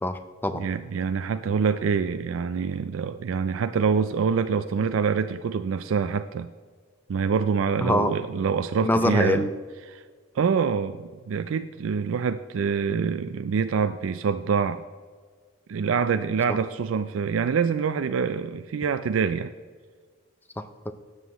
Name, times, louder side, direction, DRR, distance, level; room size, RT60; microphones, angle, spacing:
voice 1, 0.0-0.6 7.8-8.1 8.8-9.5 16.5-16.6 20.6-20.9, left 1 dB, 10° left, 10 dB, 0.5 m, -25 dB
voice 2, 0.5-6.5 7.1-9.5 9.9-10.0 10.3-14.8 15.7-19.5, right 6 dB, 85° right, 10 dB, 0.4 m, -25 dB
12.5 x 8.1 x 3.0 m, 1.6 s
head